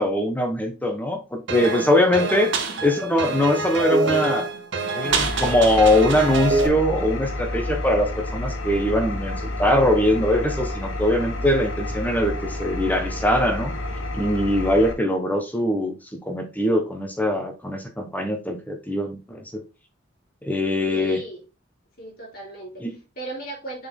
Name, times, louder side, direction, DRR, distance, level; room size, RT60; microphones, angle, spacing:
voice 1, 0.0-2.5 2.8-4.5 4.9-13.8 14.1-19.6 20.4-21.2 22.8-23.0, left 1 dB, 10° left, 1.0 m, -22 dB
sound 1, 1.5-6.7, right 3 dB, 65° right, 1.2 m, -25 dB
voice 2, 2.2-2.6 20.9-21.4 22.0-22.8 23.1-23.9, right 2 dB, 50° left, 3.1 m, -36 dB
Engine, 5.1-14.9, left 1 dB, 75° left, 1.4 m, -30 dB
6.6 x 4.1 x 3.7 m
head